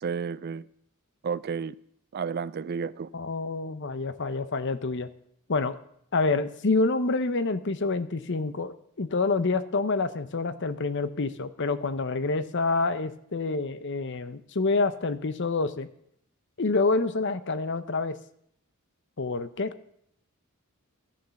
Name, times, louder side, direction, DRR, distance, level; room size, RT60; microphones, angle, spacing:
voice 1, 0.0-0.7 1.2-1.8 2.1-3.1, right 6 dB, 45° right, 19 dB, 0.4 m, -31 dB
voice 2, 3.1-5.1 5.5-5.7 6.1-15.9 16.6-18.2 19.2-19.7, left 3 dB, 55° left, 12 dB, 0.8 m, -27 dB
14.0 x 7.4 x 7.0 m, 0.71 s
head